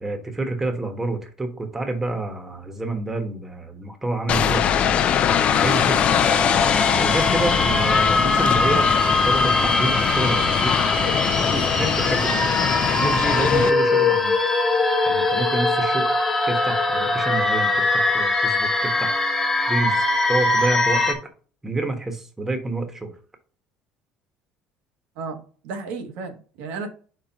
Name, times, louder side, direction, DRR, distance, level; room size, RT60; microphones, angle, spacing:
voice 1, 0.0-4.7 5.5-6.1 7.0-12.5 12.9-14.3 15.1-16.1 16.5-19.2 19.7-21.2 21.6-23.1, right 2 dB, 15° right, 1.3 m, -28 dB
sound 1, 4.3-13.7, left 8 dB, 45° left, 0.6 m, -22 dB
sound 2, 5.6-21.1, left 2 dB, 10° left, 1.3 m, -22 dB
voice 2, 8.2-8.5 25.2-26.9, right 4 dB, 75° right, 1.3 m, -33 dB
4.7 x 4.5 x 5.1 m
cardioid pair, 125°, 3 cm